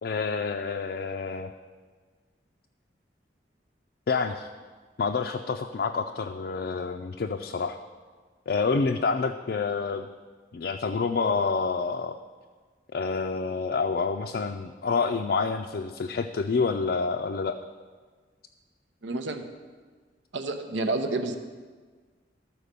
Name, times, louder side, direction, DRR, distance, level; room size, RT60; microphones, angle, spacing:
voice 1, 0.0-1.5 4.1-4.5 5.0-7.8 8.5-10.1 10.5-12.1 12.9-17.6, left 4 dB, 55° left, 4 dB, 0.4 m, -28 dB
voice 2, 19.0-19.4 20.3-21.4, right 2 dB, 85° right, 7 dB, 0.8 m, -29 dB
12.5 x 4.6 x 6.7 m, 1.5 s
head